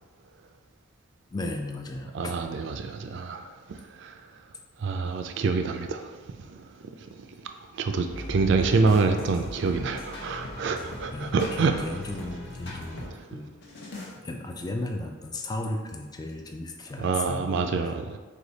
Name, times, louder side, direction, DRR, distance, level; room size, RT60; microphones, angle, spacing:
voice 1, 1.3-2.4 11.1-13.5 14.2-17.6 17.8-17.9, left 2 dB, 20° left, 3 dB, 0.3 m, -35 dB
voice 2, 2.1-3.4 4.0-4.1 4.8-6.2 6.5-6.6 7.8-11.7 17.0-18.2, right 4 dB, 60° right, 6 dB, 0.4 m, -26 dB
sound 1, 8.1-13.1 13.6-14.1, left 1 dB, 55° left, 0.9 m, -39 dB
4.8 x 2.3 x 3.9 m, 1.4 s
head